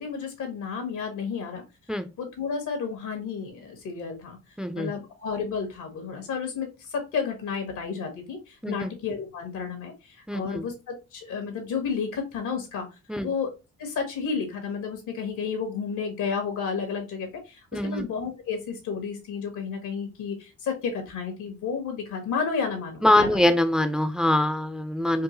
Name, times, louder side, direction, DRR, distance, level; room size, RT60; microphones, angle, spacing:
voice 1, 0.0-1.6 2.2-4.4 4.7-12.9 13.2-13.5 13.8-23.4, left 6 dB, 85° left, 4 dB, 1.6 m, -31 dB
voice 2, 4.6-4.9 8.6-8.9 10.3-10.7 13.1-13.3 17.7-18.1 23.0-25.2, left 1 dB, 5° right, 9 dB, 0.4 m, -23 dB
4.6 x 2.4 x 3.0 m, 0.27 s
cardioid pair, 90°, 30 cm